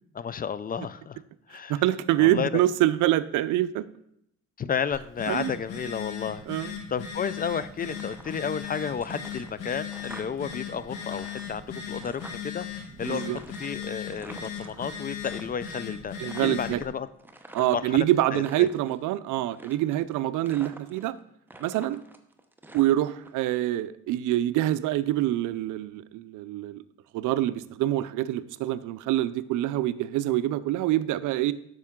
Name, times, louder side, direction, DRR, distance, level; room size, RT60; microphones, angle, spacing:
voice 1, 0.2-1.2 1.5-1.7 2.2-2.6 4.6-17.1 17.6-18.1 18.3-18.7, left 7 dB, 30° left, 15 dB, 0.4 m, -32 dB
voice 2, 1.7-3.8 5.3-5.5 6.5-6.7 13.1-13.4 16.2-16.8 17.5-21.1 21.6-22.0 22.7-26.8 27.1-31.5, right 14 dB, 90° right, 15 dB, 0.5 m, -25 dB
Telephone, 4.9-16.9, left 7 dB, 85° left, 1.8 m, -38 dB
sound 1, 7.8-8.7 8.9-10.6 10.8-12.6 13.0-15.4 15.7-16.0 16.2-17.9 18.3-19.0 19.5-20.1 20.5-21.2 21.5-23.3, right 1 dB, 5° right, 0.8 m, -47 dB
8.9 x 6.3 x 3.7 m, 0.75 s
cardioid pair, 90°, 30 cm